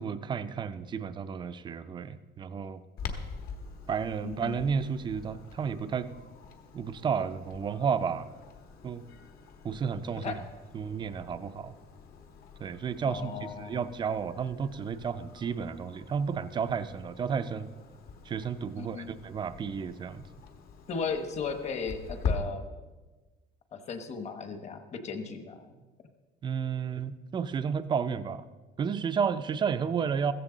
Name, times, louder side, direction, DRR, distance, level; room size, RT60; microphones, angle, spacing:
voice 1, 0.0-2.8 3.9-6.1 6.7-8.3 8.8-9.0 9.6-10.4 10.7-11.8 12.6-17.7 18.3-20.3 26.4-28.5 28.8-30.3, right 6 dB, 25° right, 12 dB, 0.5 m, -32 dB
Clock, 3.0-22.3, left 5 dB, 55° left, 1.3 m, -43 dB
voice 2, 4.2-4.6 10.2-10.4 13.0-13.8 18.7-19.2 20.9-22.7 23.7-25.7, left 5 dB, 35° left, 8 dB, 1.2 m, -36 dB
15.0 x 14.5 x 3.9 m, 1.3 s
cardioid pair, 170°, 19 cm